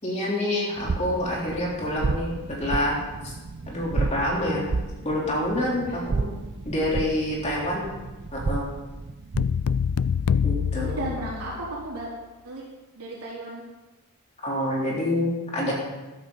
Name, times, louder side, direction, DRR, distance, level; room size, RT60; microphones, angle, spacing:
voice 1, 0.0-3.0 3.7-4.6 5.0-6.3 6.6-7.8 8.3-8.7 10.4-11.0 14.4-15.7, left 1 dB, 30° left, -4 dB, 3.6 m, -27 dB
sound 1, 0.8-9.7, right 3 dB, 50° right, 0.5 m, -32 dB
sound 2, 9.4-11.9, left 7 dB, 80° left, 0.4 m, -25 dB
voice 2, 10.7-12.1 12.4-12.6 13.0-13.6, right 2 dB, 80° right, -6 dB, 3.8 m, -34 dB
13.5 x 12.5 x 4.1 m, 1.1 s
head